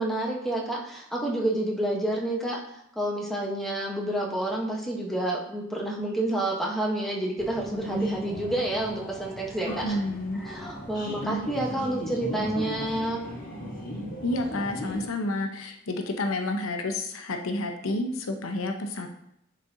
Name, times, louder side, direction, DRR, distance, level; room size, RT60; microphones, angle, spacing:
voice 1, 0.0-2.6 3.0-10.0 10.3-13.3, right 1 dB, ahead, -2 dB, 1.0 m, -29 dB
sound 1, 7.4-15.1, equal, 45° left, 1.6 m, -37 dB
voice 2, 9.7-10.4 11.0-11.5 14.2-19.1, left 2 dB, 85° left, 4 dB, 0.8 m, -30 dB
10.0 x 4.3 x 2.7 m, 0.77 s
head